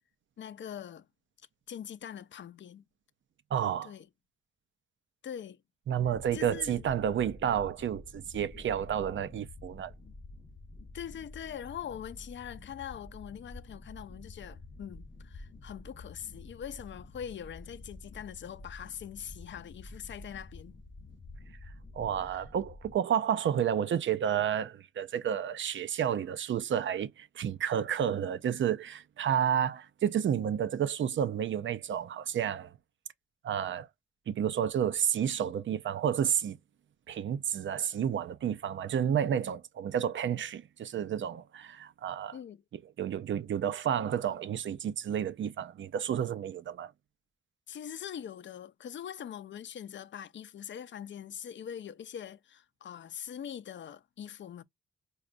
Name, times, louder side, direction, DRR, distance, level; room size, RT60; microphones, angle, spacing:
voice 1, 0.4-1.1 1.7-2.8 3.8-4.1 5.2-5.6 6.3-6.8 10.9-20.8 22.2-22.4 42.3-42.6 47.7-54.6, left 9 dB, 65° left, 0.5 m, -43 dB
voice 2, 3.5-3.9 5.9-9.9 21.9-32.7 33.4-33.9 34.3-36.6 37.1-42.4 43.0-46.9, right 9 dB, 70° right, 0.5 m, -31 dB
sound 1, 6.0-23.0, left 2 dB, 25° left, 0.8 m, -49 dB
4.9 x 2.3 x 2.5 m
cardioid pair, 95°, 20 cm